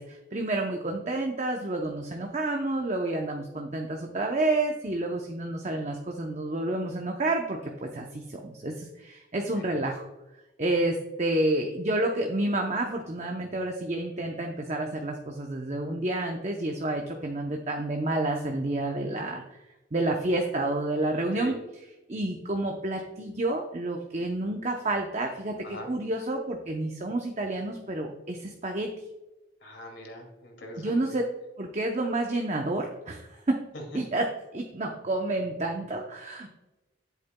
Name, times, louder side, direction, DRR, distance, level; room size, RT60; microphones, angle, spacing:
voice 1, 0.0-10.1 10.6-19.4 19.9-21.6 22.1-28.9 30.8-31.2 31.6-33.6 33.9-34.3 34.5-36.5, right 2 dB, 35° right, 2 dB, 0.7 m, -29 dB
voice 2, 29.6-31.0, equal, 70° left, 1 dB, 2.4 m, -41 dB
10.5 x 8.3 x 2.2 m, 1.0 s
head